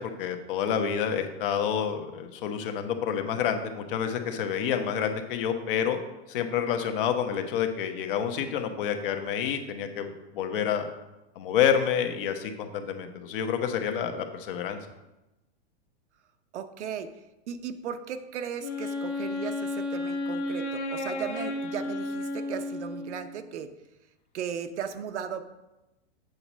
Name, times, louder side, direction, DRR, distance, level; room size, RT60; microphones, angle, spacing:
voice 1, 0.0-6.0 6.3-10.9 11.4-14.8, left 8 dB, 50° left, 7 dB, 0.9 m, -28 dB
voice 2, 16.5-17.1 17.5-23.7 24.3-25.4, right 8 dB, 85° right, 9 dB, 0.8 m, -36 dB
Wind instrument woodwind instrument, 18.6-23.4, left 2 dB, 90° left, 1.6 m, -32 dB
7.9 x 4.2 x 6.0 m, 1.0 s
supercardioid pair, 160°, 34 cm